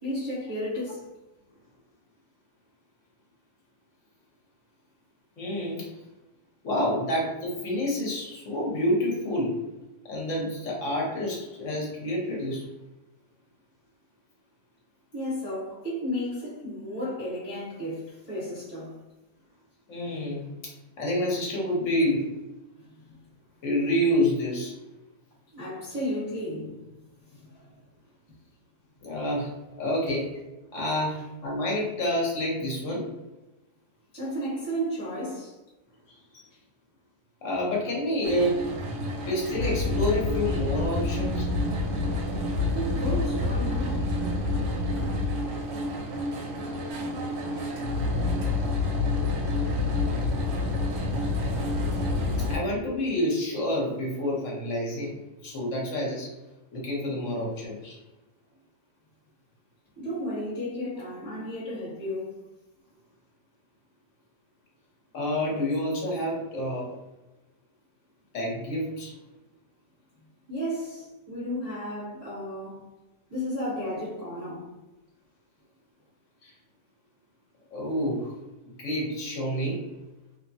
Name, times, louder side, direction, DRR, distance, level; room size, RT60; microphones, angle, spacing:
voice 1, 0.0-1.1 15.1-19.0 22.9-23.2 25.5-26.8 27.2-27.7 34.1-35.6 42.7-44.0 48.5-48.8 60.0-62.4 70.5-72.8 73.3-74.7, equal, 25° left, 1.2 m, -33 dB
voice 2, 5.4-5.9 6.6-9.5 10.1-12.6 19.9-20.4 21.0-22.3 23.6-24.7 29.0-29.5 29.8-30.3 30.7-33.1 36.1-36.2 37.4-38.6 39.3-41.5 52.5-56.3 56.7-58.0 65.1-66.9 68.3-69.1 76.4-76.5 77.7-78.3 78.6-79.8, left 1 dB, 50° left, 1.2 m, -28 dB
sound 1, 38.2-52.6, left 2 dB, 85° right, 1.3 m, -28 dB
3.0 x 2.2 x 2.6 m
omnidirectional pair, 1.8 m